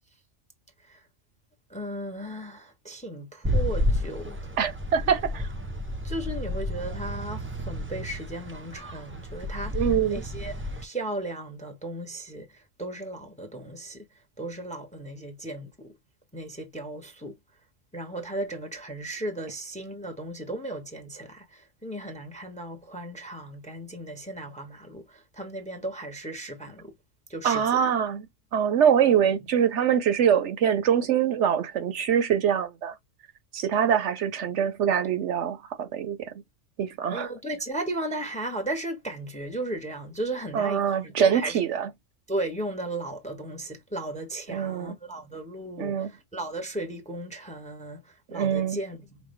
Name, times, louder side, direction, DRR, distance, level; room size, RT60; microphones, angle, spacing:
voice 1, 1.7-4.5 6.0-14.0 14.4-15.9 16.3-17.4 17.9-26.9 27.3-27.8 37.1-41.6 42.3-49.2, right 1 dB, 5° left, 0.7 m, -36 dB
sound 1, 3.4-10.9, left 1 dB, 20° right, 0.3 m, -31 dB
voice 2, 4.6-5.5 9.7-10.2 27.4-28.3 28.5-32.9 33.5-36.2 36.8-37.3 40.5-41.9 44.5-44.9 45.8-46.1 48.3-48.8, right 8 dB, 70° right, 0.9 m, -24 dB
5.3 x 2.2 x 3.1 m
omnidirectional pair, 1.3 m